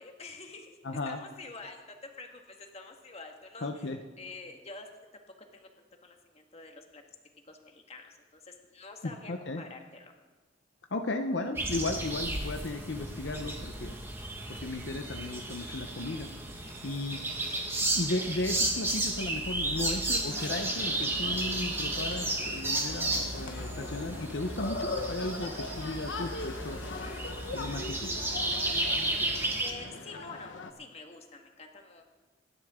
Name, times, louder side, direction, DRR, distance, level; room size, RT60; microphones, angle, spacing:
voice 1, 0.0-0.8 1.0-4.9 5.1-5.2 5.5-5.7 6.0-7.0 7.5-10.1 17.3-17.7 29.6-32.0, left 3 dB, 35° left, 3 dB, 1.7 m, -47 dB
voice 2, 0.8-1.2 3.6-4.0 9.0-9.6 10.9-14.0 14.6-16.3 16.8-17.2 18.0-26.8 27.5-28.1, left 2 dB, 70° left, 5 dB, 0.9 m, -35 dB
sound 1, 11.5-29.7, right 2 dB, 15° right, 1.6 m, -33 dB
sound 2, 20.3-30.7, left 3 dB, 90° left, 1.2 m, -40 dB
27.0 x 11.0 x 3.7 m, 1.2 s
head